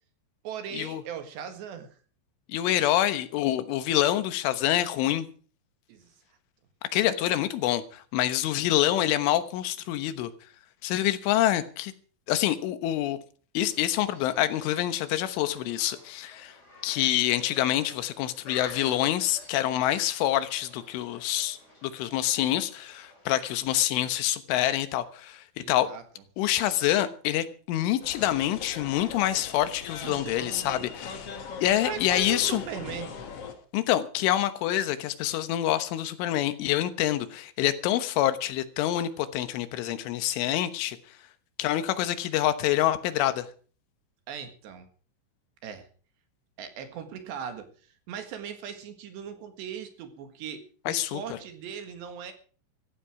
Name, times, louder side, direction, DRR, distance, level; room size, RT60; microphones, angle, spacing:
voice 1, 0.4-2.0 5.9-6.1 25.6-26.0 30.0-30.9 31.8-33.1 44.3-44.9 45.6-45.9 46.6-52.3, right 8 dB, 70° right, 3.7 m, -39 dB
voice 2, 2.5-5.3 6.9-10.3 10.8-11.9 12.3-13.2 13.6-16.5 16.8-25.9 26.4-31.1 31.6-32.6 33.7-41.0 41.6-43.5 50.9-51.4, left 13 dB, 85° left, 3.7 m, -26 dB
sound 1, 13.6-24.0, left 2 dB, 15° left, 5.9 m, -51 dB
sound 2, 28.0-33.5, left 6 dB, 55° left, 1.7 m, -40 dB
16.0 x 14.5 x 4.9 m
omnidirectional pair, 5.4 m